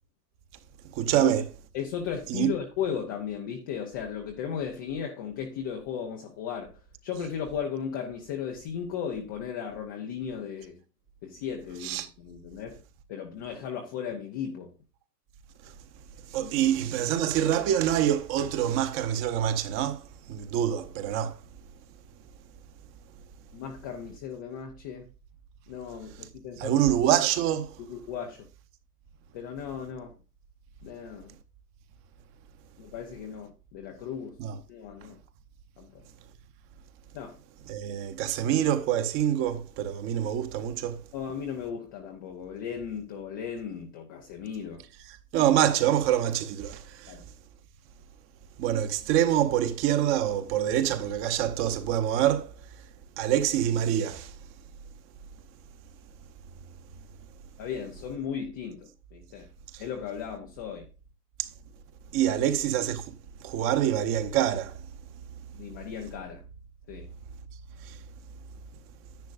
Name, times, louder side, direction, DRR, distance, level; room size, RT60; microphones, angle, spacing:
voice 1, 0.9-1.4 2.3-2.5 11.8-12.1 16.3-20.0 20.3-21.4 26.6-27.8 34.4-34.6 37.7-41.0 45.3-47.2 48.6-52.5 53.2-54.3 59.7-59.8 61.4-61.5 62.1-63.0 63.4-64.8 67.8-68.0, right 11 dB, 25° right, 0.9 m, -26 dB
voice 2, 1.7-10.8 11.2-12.8 13.1-14.7 16.4-16.7 23.5-25.1 25.7-26.9 27.8-28.5 29.3-30.1 30.8-31.3 32.8-34.4 34.7-35.2 35.8-36.0 37.1-37.4 41.1-44.9 47.1-47.2 57.6-59.5 59.8-60.8 62.2-62.4 65.5-66.4 66.9-67.1, left 8 dB, 15° left, 0.4 m, -36 dB
10.5 x 9.6 x 2.5 m
hypercardioid pair, 130°, 48 cm